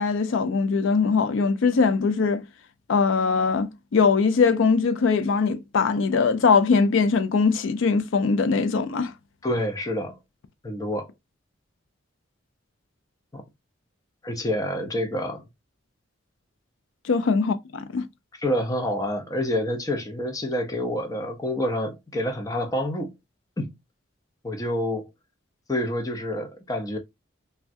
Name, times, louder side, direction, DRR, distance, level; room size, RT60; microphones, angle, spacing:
voice 1, 0.0-2.5 2.9-9.1 17.0-18.0, left 5 dB, 75° left, 0.4 m, -21 dB
voice 2, 9.4-10.2 10.6-11.1 13.3-13.4 14.2-15.4 18.4-23.1 23.6-23.7 24.4-25.1 25.7-27.0, left 1 dB, 20° left, 0.5 m, -27 dB
3.4 x 2.2 x 2.5 m
head